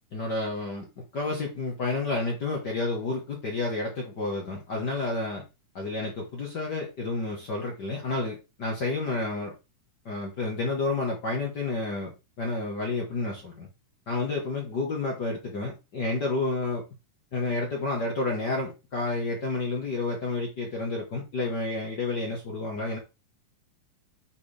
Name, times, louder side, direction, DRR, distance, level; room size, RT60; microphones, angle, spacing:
voice 1, 0.1-0.8 1.1-5.4 5.7-9.5 10.0-13.7 14.1-16.8 17.3-23.0, left 3 dB, 50° left, 1.3 m, -30 dB
9.4 x 4.5 x 3.3 m
omnidirectional pair, 3.7 m